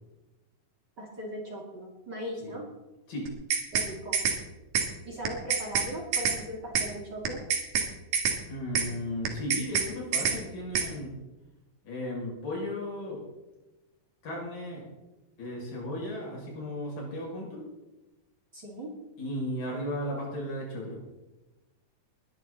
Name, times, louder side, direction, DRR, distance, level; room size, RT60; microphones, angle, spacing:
voice 1, 1.0-2.6 3.7-4.2 5.0-7.4 18.5-18.9, equal, 35° right, -1 dB, 2.5 m, -39 dB
sound 1, 3.3-4.4 4.7-4.9 5.2-5.9 6.1-6.4 6.7-6.9 7.2-7.9 8.1-8.4 8.7-8.9 9.2-9.9 10.1-10.4 10.7-10.9, right 6 dB, 75° right, 3.5 m, -26 dB
voice 2, 8.5-11.2 11.8-13.2 14.2-14.8 15.4-17.6 19.2-21.0, left 1 dB, 75° left, -3 dB, 7.7 m, -35 dB
21.0 x 11.5 x 4.1 m, 1.1 s
omnidirectional pair, 4.0 m